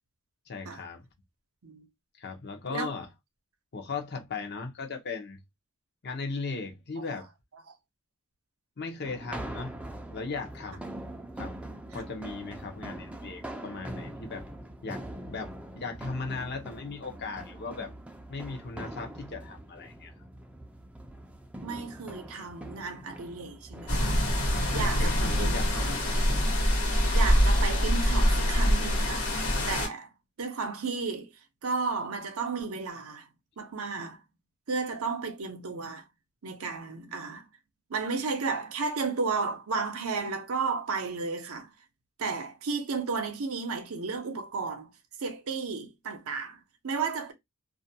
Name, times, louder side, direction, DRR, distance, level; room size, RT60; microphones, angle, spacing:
voice 1, 0.5-1.1 2.2-3.1 3.7-5.4 6.0-7.3 8.8-9.8 10.1-11.0 11.4-11.6 11.9-14.5 14.8-17.9 18.3-20.1 24.5-26.1, left 4 dB, 50° left, 0.6 m, -37 dB
sound 1, 9.0-26.5, right 1 dB, 5° right, 0.4 m, -43 dB
voice 2, 21.6-24.2 24.7-26.2 27.1-30.1 30.4-33.3 33.6-34.2 34.7-36.1 36.4-37.5 37.9-41.7 42.2-44.9 45.2-47.3, right 4 dB, 75° right, 0.6 m, -33 dB
sound 2, 23.9-29.9, equal, 85° left, 1.2 m, -25 dB
2.4 x 2.2 x 2.6 m
head